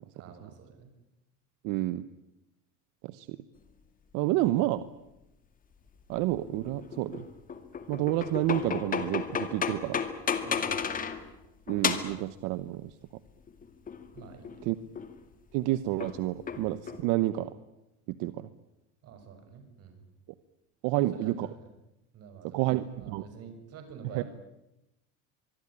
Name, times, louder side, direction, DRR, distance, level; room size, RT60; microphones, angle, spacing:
voice 1, 0.1-0.9 10.4-11.1 14.1-14.7 19.0-20.0 20.9-21.7 22.1-24.2, right 6 dB, 50° right, 7 dB, 6.7 m, -48 dB
voice 2, 1.6-2.0 3.0-3.4 4.1-4.9 6.1-7.3 7.9-10.0 11.7-12.9 14.6-14.7 15.5-17.5 18.1-18.5 20.8-21.5 22.5-23.2 24.1-24.2, right 16 dB, 75° right, 14 dB, 1.2 m, -29 dB
sound 1, 6.2-11.3 11.7-12.2 13.5-14.6 15.0-15.2 16.0-17.0, left 6 dB, 25° left, 2.2 m, -33 dB
24.5 x 22.5 x 9.9 m, 0.91 s
cardioid pair, 155°, 31 cm